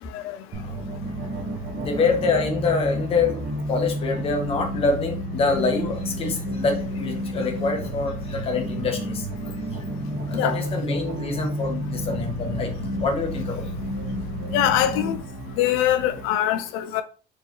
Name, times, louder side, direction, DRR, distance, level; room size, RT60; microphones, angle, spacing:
sound 1, 0.5-15.2, equal, 35° right, 0.9 m, -31 dB
sound 2, 1.0-16.3, right 1 dB, 75° right, 1.2 m, -39 dB
voice 1, 1.7-3.4 3.7-9.3 10.3-13.6, left 4 dB, 30° left, 0.9 m, -26 dB
voice 2, 14.5-15.2 15.6-17.0, left 11 dB, 85° left, 0.4 m, -23 dB
4.4 x 3.1 x 2.8 m
cardioid pair, 175°, 21 cm